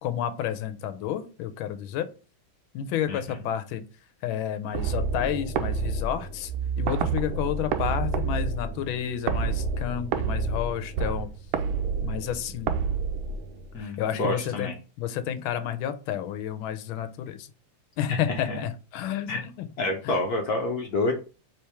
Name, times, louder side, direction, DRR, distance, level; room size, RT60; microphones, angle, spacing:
voice 1, 0.0-2.1 2.7-3.8 4.2-6.5 6.8-11.3 12.0-12.7 13.8-14.7 15.0-17.5 18.0-19.7 20.0-20.1, left 10 dB, 80° left, 11 dB, 1.4 m, -30 dB
sound 1, 4.7-13.8, right 5 dB, 80° right, 1.4 m, -29 dB
voice 2, 13.7-14.7 18.1-18.6 19.3-19.4 19.8-21.1, left 2 dB, 65° left, 3 dB, 1.0 m, -28 dB
4.4 x 3.5 x 3.4 m, 0.34 s
omnidirectional pair, 2.2 m